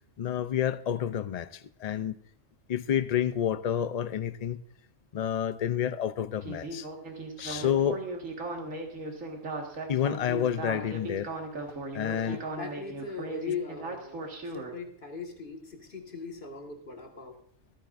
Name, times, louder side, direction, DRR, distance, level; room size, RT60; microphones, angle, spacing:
voice 1, 0.2-2.1 2.7-4.6 5.1-6.9 7.4-8.0 9.9-11.3 11.9-12.4, left 10 dB, 60° left, 0.4 m, -29 dB
Speech synthesizer, 6.4-14.7, right 2 dB, 85° right, 2.2 m, -37 dB
voice 2, 12.2-17.4, left 5 dB, 40° left, 1.8 m, -39 dB
24.5 x 8.9 x 2.5 m
omnidirectional pair, 1.3 m